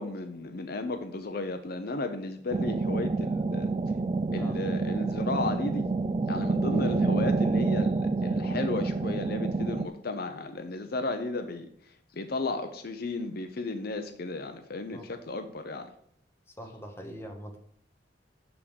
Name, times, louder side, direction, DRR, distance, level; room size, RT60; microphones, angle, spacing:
voice 1, 0.0-3.7 4.3-5.9 6.3-11.7 12.1-15.9, left 3 dB, 55° left, 7 dB, 0.7 m, -34 dB
sound 1, 2.5-9.9, right 3 dB, 30° right, 0.3 m, -28 dB
voice 2, 16.6-17.6, equal, 15° left, 3 dB, 1.3 m, -42 dB
11.0 x 3.7 x 6.9 m, 0.65 s
head